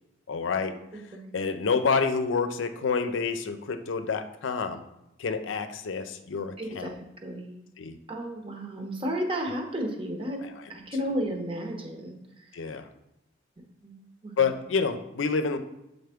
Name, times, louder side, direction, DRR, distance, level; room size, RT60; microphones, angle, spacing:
voice 1, 0.3-0.8 1.3-4.8 5.2-6.9 7.8-8.0 10.4-10.5 12.5-12.9 14.4-15.6, left 5 dB, 85° left, 9 dB, 0.5 m, -28 dB
voice 2, 0.9-1.4 6.6-7.7 8.1-10.4 10.7-12.7 13.8-14.0 14.2-14.5, equal, 30° right, 2 dB, 0.9 m, -33 dB
7.8 x 4.0 x 3.5 m, 0.88 s
head